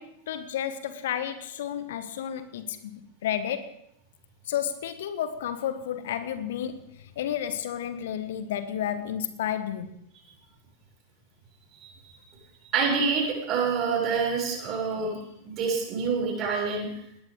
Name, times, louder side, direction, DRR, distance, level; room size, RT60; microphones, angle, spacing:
voice 1, 0.0-3.7 4.4-9.9, left 10 dB, 55° left, 11 dB, 1.3 m, -32 dB
voice 2, 11.8-12.2 12.7-15.2 15.4-16.9, right 5 dB, 35° right, 0 dB, 7.0 m, -27 dB
20.0 x 18.5 x 3.8 m, 0.77 s
figure-of-eight pair, 90°, 0 cm